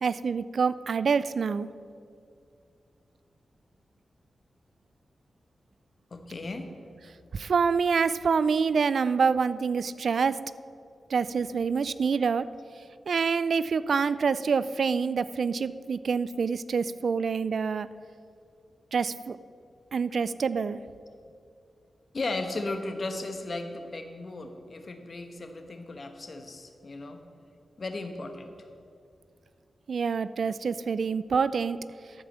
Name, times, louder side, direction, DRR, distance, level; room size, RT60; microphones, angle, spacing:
voice 1, 0.0-1.7 7.3-10.4 11.1-12.4 13.1-17.9 18.9-19.4 19.9-20.8 29.9-31.8, right 5 dB, 70° right, 16 dB, 0.3 m, -26 dB
voice 2, 6.1-6.7 22.1-27.2 27.8-28.5, left 2 dB, 50° left, 6 dB, 1.1 m, -36 dB
13.0 x 4.8 x 7.3 m, 2.4 s
cardioid pair, 65°, 0 cm